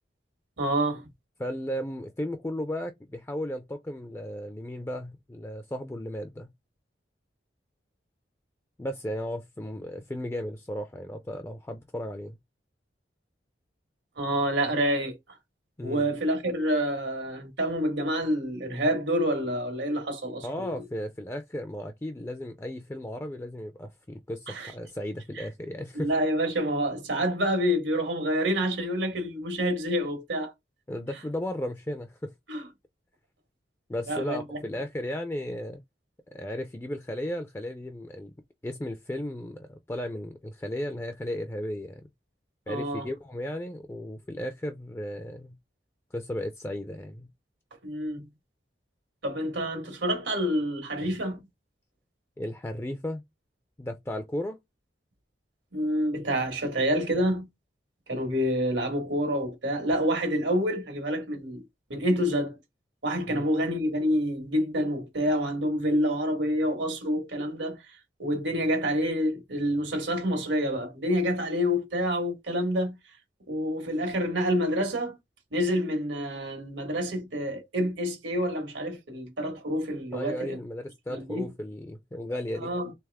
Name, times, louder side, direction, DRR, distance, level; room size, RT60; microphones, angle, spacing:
voice 1, 0.6-1.0 14.2-15.2 15.8-20.7 24.5-24.7 25.4-25.5 25.9-30.5 32.5-32.6 34.1-34.6 42.7-43.1 47.8-48.2 49.2-51.4 55.7-57.5 58.1-61.6 61.9-62.6 63.0-67.8 68.2-72.9 73.5-75.2 75.5-80.6 81.1-81.5 82.6-82.9, equal, 90° right, 1.7 m, -28 dB
voice 2, 1.4-6.5 8.8-12.4 15.8-16.1 20.4-26.1 30.9-32.3 33.9-35.8 36.3-38.3 38.6-42.0 42.7-45.6 46.1-47.3 52.4-53.2 53.8-54.6 63.3-63.5 80.1-82.7, left 1 dB, 15° left, 0.3 m, -35 dB
3.4 x 3.4 x 3.4 m
head